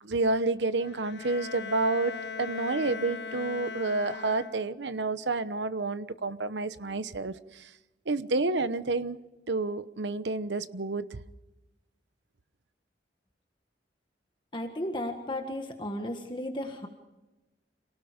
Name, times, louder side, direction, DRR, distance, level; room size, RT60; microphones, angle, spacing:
voice 1, 0.0-7.7 8.1-9.2 9.5-11.2, right 3 dB, 85° right, 13 dB, 1.0 m, -29 dB
Bowed string instrument, 0.8-4.9, left 5 dB, 85° left, 0.9 m, -39 dB
voice 2, 14.5-16.9, left 1 dB, 30° left, 4 dB, 1.7 m, -34 dB
27.5 x 18.0 x 5.2 m, 1.0 s
head